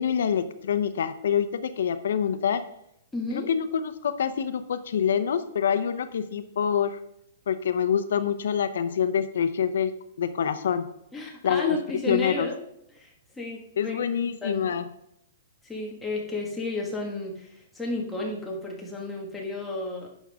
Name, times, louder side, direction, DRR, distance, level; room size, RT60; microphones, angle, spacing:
voice 1, 0.0-2.6 3.3-7.0 7.5-9.9 10.2-10.9 11.4-11.8 12.1-12.5 13.8-14.8, left 8 dB, 75° left, 11 dB, 0.7 m, -26 dB
voice 2, 3.1-3.5 11.1-12.6 12.9-14.0 14.4-14.7 15.6-20.1, left 2 dB, 5° left, -2 dB, 1.7 m, -32 dB
11.0 x 7.4 x 3.6 m, 0.77 s
hypercardioid pair, 160°, 0 cm